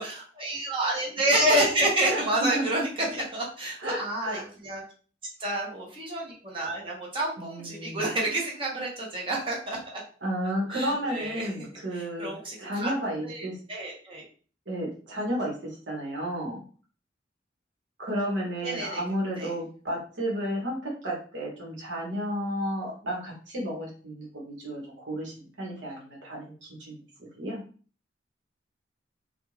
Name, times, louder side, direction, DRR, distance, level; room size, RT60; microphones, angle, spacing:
voice 1, 0.0-4.8 5.4-10.0 10.7-11.5 11.9-12.9 13.2-14.2 18.6-19.0 19.4-19.5, right 1 dB, 30° right, -2 dB, 0.8 m, -29 dB
voice 2, 2.1-2.8 3.8-4.4 7.4-8.1 10.2-12.3 12.6-13.6 14.7-16.6 18.0-27.6, equal, 80° right, -3 dB, 1.0 m, -32 dB
2.5 x 2.2 x 3.0 m, 0.41 s
head